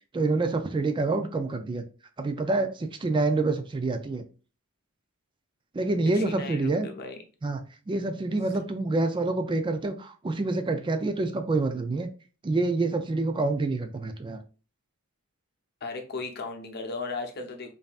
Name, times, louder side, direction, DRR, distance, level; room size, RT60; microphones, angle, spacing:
voice 1, 0.1-1.8 2.2-4.3 5.7-6.9 7.4-7.6 7.9-12.1 12.4-14.4, right 3 dB, 25° right, 7 dB, 0.4 m, -27 dB
voice 2, 6.1-7.2 15.8-17.7, left 3 dB, 50° left, 4 dB, 0.8 m, -36 dB
5.3 x 2.7 x 2.4 m, 0.35 s
head